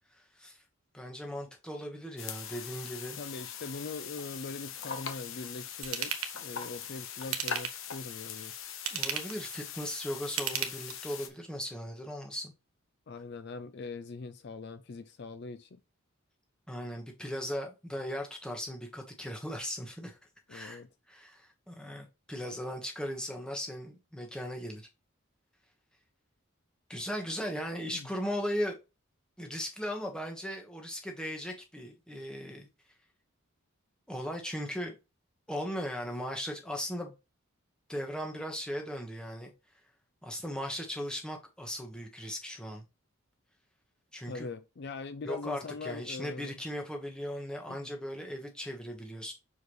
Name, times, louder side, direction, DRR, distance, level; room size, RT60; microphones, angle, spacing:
voice 1, 0.9-3.2 8.9-12.5 16.7-20.2 20.5-20.8 21.1-24.9 26.9-28.8 29.4-32.7 34.1-34.9 35.5-37.1 37.9-39.5 40.2-42.8 44.1-44.5 45.2-49.3, equal, 5° left, 1.4 m, -38 dB
sound 1, 2.2-11.3, left 7 dB, 70° left, 1.0 m, -42 dB
voice 2, 3.2-8.5 13.1-15.8 20.5-20.9 27.9-28.1 44.3-46.6 47.7-47.9, left 4 dB, 50° left, 0.4 m, -42 dB
Ratchet pawl / Tools, 5.8-6.3 7.2-7.9 8.7-9.4 10.2-11.2 11.7-11.8, right 8 dB, 85° right, 1.2 m, -34 dB
6.4 x 4.7 x 3.2 m
head